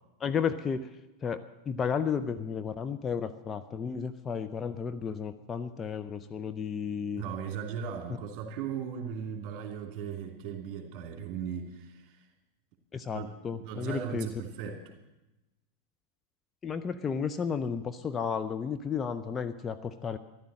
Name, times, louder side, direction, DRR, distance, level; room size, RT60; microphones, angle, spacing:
voice 1, 0.2-0.9 1.2-7.2 12.9-14.4 16.6-20.2, left 6 dB, 20° left, 8 dB, 0.6 m, -33 dB
voice 2, 7.2-12.2 13.1-14.8, right 7 dB, 40° right, 3 dB, 2.6 m, -37 dB
14.0 x 11.0 x 7.6 m, 1.0 s
figure-of-eight pair, 90°, 0 cm